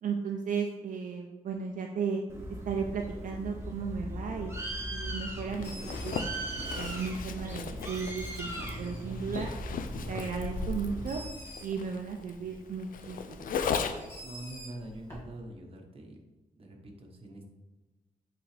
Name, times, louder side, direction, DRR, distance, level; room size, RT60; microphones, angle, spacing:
voice 1, 0.0-2.2 2.7-4.5 4.9-6.3 6.7-9.5 10.1-11.2 11.6-13.6, right 6 dB, 70° right, 2 dB, 0.5 m, -35 dB
Bird, 2.3-11.3, right 1 dB, 20° right, 1.1 m, -39 dB
Bird 2, 5.4-15.2, equal, 15° left, 1.9 m, -50 dB
Zipper (clothing), 5.5-14.2, left 6 dB, 80° left, 0.4 m, -37 dB
voice 2, 14.2-16.2 16.6-17.4, right 1 dB, 45° right, 1 dB, 1.1 m, -44 dB
8.6 x 3.9 x 3.3 m, 1.1 s
wide cardioid pair, 130°, 14 cm